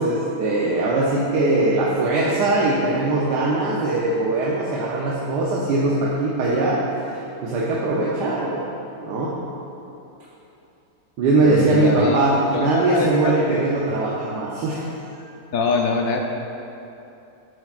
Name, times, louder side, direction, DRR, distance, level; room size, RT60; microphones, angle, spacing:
voice 1, 0.0-7.1 7.4-8.7 9.0-9.3 11.2-14.8, right 2 dB, 90° right, -4 dB, 1.4 m, -21 dB
voice 2, 11.4-13.7 15.5-16.2, left 4 dB, 65° left, 2 dB, 0.9 m, -24 dB
10.0 x 7.9 x 2.4 m, 2.9 s
omnidirectional pair, 1.7 m